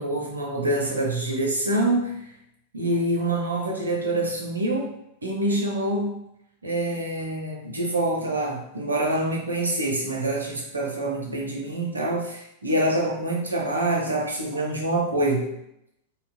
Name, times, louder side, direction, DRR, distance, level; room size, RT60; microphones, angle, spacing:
voice 1, 0.0-2.3 2.7-4.9 5.2-6.2 6.6-15.6, right 1 dB, 75° right, 0 dB, 0.5 m, -26 dB
2.8 x 2.1 x 2.5 m, 0.79 s
figure-of-eight pair, 90°, 0 cm